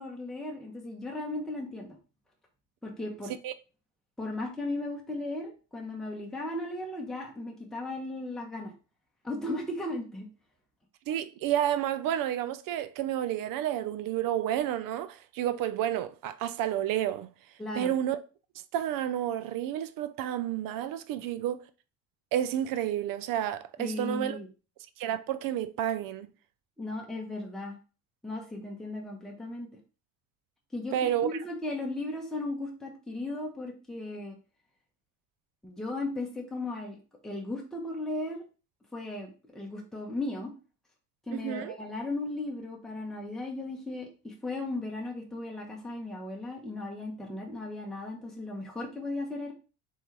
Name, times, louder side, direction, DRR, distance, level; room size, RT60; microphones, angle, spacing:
voice 1, 0.0-2.0 2.8-3.3 4.2-8.7 9.2-10.2 17.6-17.9 23.8-24.5 26.8-27.7 28.2-29.7 30.7-34.3 35.6-38.4 38.9-40.5 41.3-49.5, left 2 dB, ahead, 1.1 m, -36 dB
voice 2, 11.1-17.3 17.7-18.2 18.7-21.6 22.3-24.4 25.0-26.3 30.9-31.3 41.3-41.8, right 11 dB, 65° right, 0.5 m, -30 dB
4.0 x 3.8 x 3.3 m
supercardioid pair, 95°, 37 cm